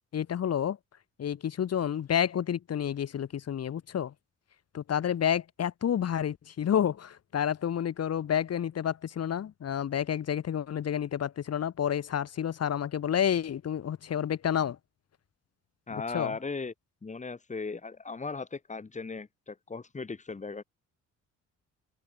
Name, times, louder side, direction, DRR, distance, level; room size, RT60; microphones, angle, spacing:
voice 1, 0.1-0.8 1.2-4.1 4.7-14.8 15.9-16.3, left 9 dB, 55° left, 2.1 m, -30 dB
voice 2, 15.9-16.7 17.0-20.6, left 4 dB, 25° left, 2.3 m, -37 dB
open air
cardioid pair, 90°, 30 cm